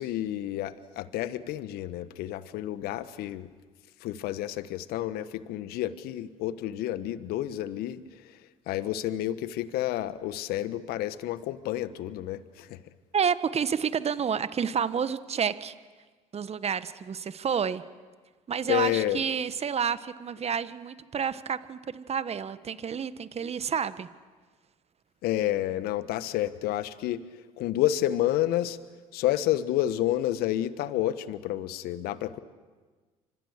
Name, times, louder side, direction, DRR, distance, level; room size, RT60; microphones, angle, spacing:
voice 1, 0.0-3.5 4.0-8.4 8.7-12.8 18.7-19.2 25.2-27.2 27.6-28.8 29.1-32.4, left 13 dB, 65° left, 14 dB, 1.3 m, -30 dB
voice 2, 13.1-15.7 16.3-17.8 18.5-24.1, right 7 dB, 40° right, 14 dB, 1.4 m, -29 dB
29.5 x 25.5 x 6.7 m, 1.4 s
hypercardioid pair, 60°, 17 cm